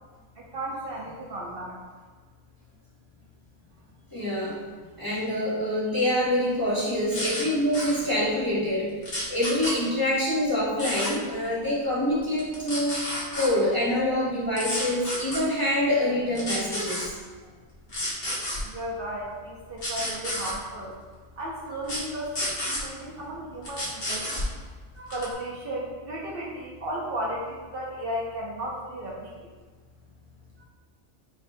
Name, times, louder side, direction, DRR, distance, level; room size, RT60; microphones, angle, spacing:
voice 1, 0.4-1.8 18.6-20.9 21.4-24.5 24.9-29.5 30.6-30.7, right 1 dB, 60° right, -3 dB, 0.7 m, -34 dB
voice 2, 4.1-4.6 5.0-8.9 9.3-17.1, left 1 dB, 20° left, -8 dB, 0.7 m, -26 dB
sound 1, 7.1-7.4 7.7-8.0 9.0-9.7 10.8-11.1 12.4-13.5 14.6-15.4 16.3-17.1 17.9-18.6 19.8-20.5 21.8-22.0 22.3-22.8 23.6-24.5 25.1-25.3, left 1 dB, 55° left, 1.5 m, -30 dB
4.7 x 3.5 x 2.6 m, 1.5 s
omnidirectional pair, 1.3 m